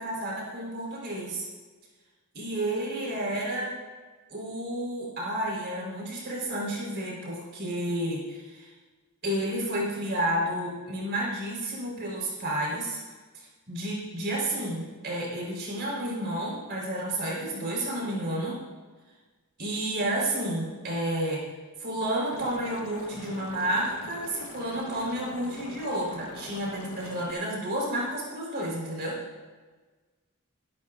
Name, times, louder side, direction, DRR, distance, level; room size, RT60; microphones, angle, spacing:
voice 1, 0.0-1.5 2.3-3.7 4.3-8.7 9.2-13.0 13.3-18.6 19.6-21.4 21.8-29.2, right 1 dB, 50° right, -4 dB, 4.8 m, -31 dB
Liquid, 22.3-27.3, left 2 dB, 65° left, 1.5 m, -44 dB
23.5 x 12.0 x 2.7 m, 1.3 s
head